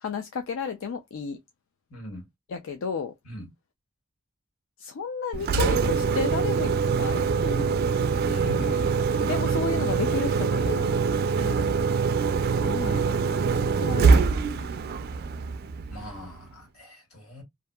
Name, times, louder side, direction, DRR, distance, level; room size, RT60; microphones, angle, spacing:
voice 1, 0.0-1.4 2.5-3.1 4.8-7.8 9.2-11.0 12.6-14.7, left 5 dB, 65° left, 0.4 m, -33 dB
voice 2, 1.9-2.3 3.2-3.5 8.3-9.0 11.3-11.7 15.9-17.4, left 1 dB, 85° left, 1.7 m, -39 dB
Engine, 5.3-16.3, right 5 dB, 45° right, 0.3 m, -24 dB
2.7 x 2.4 x 2.2 m
head